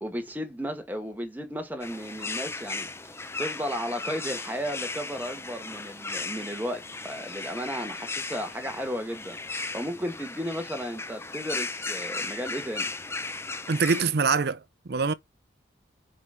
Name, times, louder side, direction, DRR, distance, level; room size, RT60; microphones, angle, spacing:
voice 1, 0.0-2.9 3.4-9.4 9.7-12.9, equal, 10° right, 1.4 m, -34 dB
sound 1, 1.8-14.0, left 3 dB, 15° left, 0.5 m, -36 dB
voice 2, 13.7-15.1, right 5 dB, 55° right, 0.6 m, -25 dB
5.0 x 4.7 x 5.5 m
head